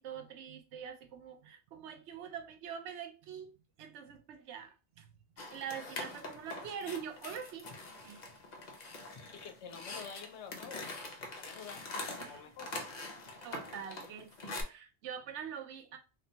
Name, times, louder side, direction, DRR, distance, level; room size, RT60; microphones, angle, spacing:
voice 1, 0.0-5.1 5.5-7.7 8.0-8.3 12.2-12.4 13.4-16.0, right 8 dB, 90° right, 0.9 m, -44 dB
sound 1, 5.4-14.6, left 2 dB, 50° left, 0.6 m, -44 dB
voice 2, 9.3-11.0 11.4-12.7, left 6 dB, 90° left, 0.9 m, -48 dB
3.1 x 2.1 x 2.7 m
omnidirectional pair, 1.1 m